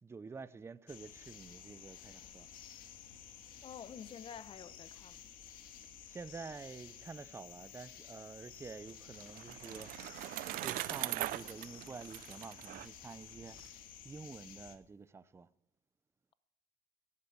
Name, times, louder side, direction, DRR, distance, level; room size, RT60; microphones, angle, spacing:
voice 1, 0.0-2.5 6.0-9.9 10.6-13.6 14.0-15.5, right 4 dB, 20° right, 0.6 m, -49 dB
sound 1, 0.9-14.8, left 9 dB, 85° left, 2.0 m, -53 dB
voice 2, 3.6-5.3, left 7 dB, 40° left, 0.8 m, -49 dB
Bicycle, 8.6-13.7, right 17 dB, 80° right, 0.5 m, -41 dB
13.0 x 11.0 x 8.6 m
cardioid pair, 125°, 14 cm